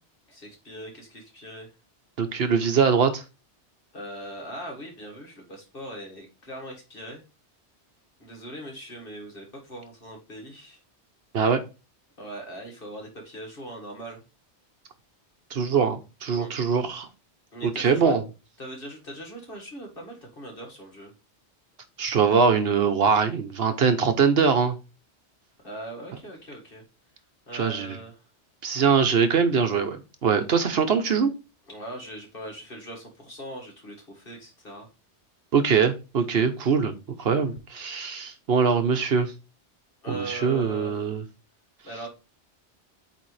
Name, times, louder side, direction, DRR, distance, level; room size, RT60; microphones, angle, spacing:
voice 1, 0.3-1.7 3.9-7.2 8.2-10.8 12.2-14.2 16.4-16.5 17.5-18.2 18.6-21.1 25.6-26.8 27.5-28.2 31.7-34.9 40.0-41.2 41.8-42.1, right 1 dB, 50° left, 1 dB, 2.1 m, -40 dB
voice 2, 2.2-3.2 11.3-11.6 15.5-17.1 17.6-18.2 22.0-24.8 27.5-28.0 28.6-31.3 35.5-39.3 40.1-41.2, right 6 dB, 65° right, 7 dB, 1.0 m, -22 dB
8.5 x 3.4 x 3.2 m, 0.29 s
omnidirectional pair, 1.2 m